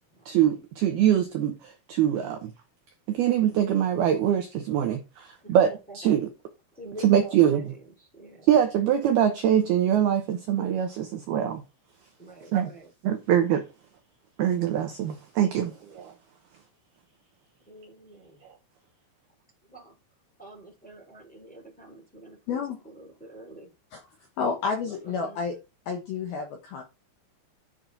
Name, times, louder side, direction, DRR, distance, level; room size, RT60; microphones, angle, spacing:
voice 1, 0.3-2.5 3.1-6.3 7.0-7.7 8.5-11.6 12.5-12.7 13.0-13.7 14.4-16.1 18.4-18.5, right 10 dB, 80° right, 2.3 m, -23 dB
voice 2, 5.4-6.1 6.7-8.5 12.2-12.9 15.5-15.9 17.7-18.4 19.6-20.0 20.4-23.7 24.6-25.5, right 2 dB, ahead, 2.1 m, -46 dB
voice 3, 24.4-25.6 25.9-26.8, left 5 dB, 70° left, 2.3 m, -30 dB
10.5 x 6.1 x 4.0 m
omnidirectional pair, 5.9 m